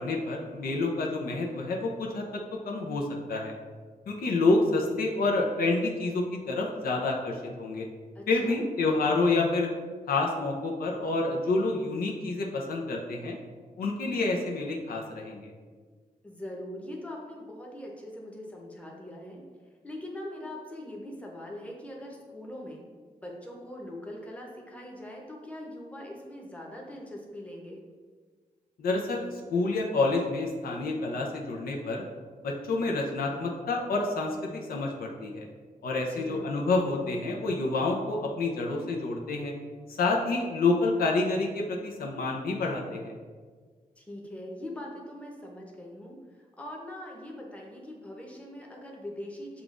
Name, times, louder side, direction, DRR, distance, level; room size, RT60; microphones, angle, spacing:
voice 1, 0.0-3.5 4.1-7.9 8.3-9.7 10.1-13.4 13.8-15.5 28.8-32.0 32.4-35.5 35.8-39.5 39.9-43.1, left 3 dB, 90° left, 0 dB, 0.6 m, -28 dB
voice 2, 8.1-8.7 16.2-19.4 19.8-22.8 23.2-27.8 36.1-36.6 44.0-46.2 46.6-49.6, left 1 dB, 10° left, -2 dB, 0.8 m, -42 dB
6.7 x 2.4 x 2.5 m, 1.6 s
cardioid pair, 80°, 15 cm